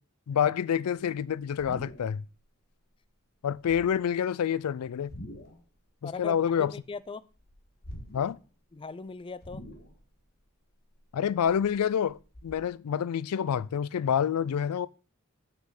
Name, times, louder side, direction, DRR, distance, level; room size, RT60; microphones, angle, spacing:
voice 1, 0.3-2.2 3.4-5.1 6.0-6.7 8.1-8.4 11.1-14.9, left 8 dB, 90° left, 0.4 m, -28 dB
sound 1, 1.2-2.4 2.6-3.0 3.5-4.2 4.9-5.7 6.0-7.0 7.3-8.5 8.8-8.9 9.4-10.2 10.6-12.5, equal, 45° left, 1.6 m, -46 dB
voice 2, 6.0-7.3 8.7-9.7, left 4 dB, 25° left, 0.4 m, -40 dB
7.7 x 6.0 x 6.5 m
head